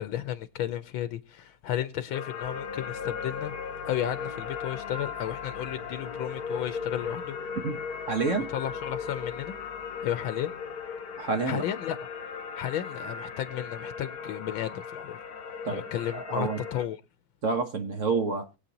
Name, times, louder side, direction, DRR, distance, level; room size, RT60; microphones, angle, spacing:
voice 1, 0.0-3.5 3.8-7.4 8.5-9.5 10.0-10.6 11.5-12.1 12.6-15.2 15.7-17.0, left 11 dB, 80° left, 1.6 m, -33 dB
sound 1, 2.1-16.9, left 6 dB, 55° left, 1.3 m, -38 dB
sound 2, 2.4-11.4, left 3 dB, 35° left, 1.1 m, -48 dB
voice 2, 8.1-8.5 11.2-11.6 15.6-15.8 16.1-16.6 17.4-18.5, right 4 dB, 45° right, 1.2 m, -28 dB
22.0 x 8.1 x 2.9 m
omnidirectional pair, 2.2 m